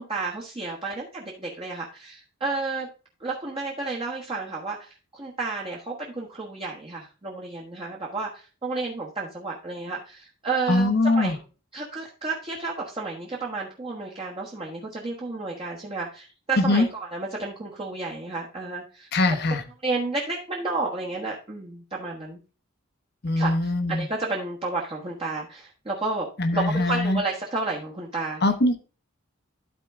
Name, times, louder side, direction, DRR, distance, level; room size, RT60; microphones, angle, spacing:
voice 1, 0.0-2.9 3.2-11.4 11.7-19.1 19.8-22.4 23.4-26.3 26.5-28.4, right 3 dB, 25° right, 1.3 m, -31 dB
voice 2, 10.7-11.3 16.6-16.9 19.1-19.6 23.2-24.1 26.4-27.2 28.4-28.8, left 2 dB, 50° left, 1.0 m, -22 dB
12.0 x 4.5 x 3.5 m
head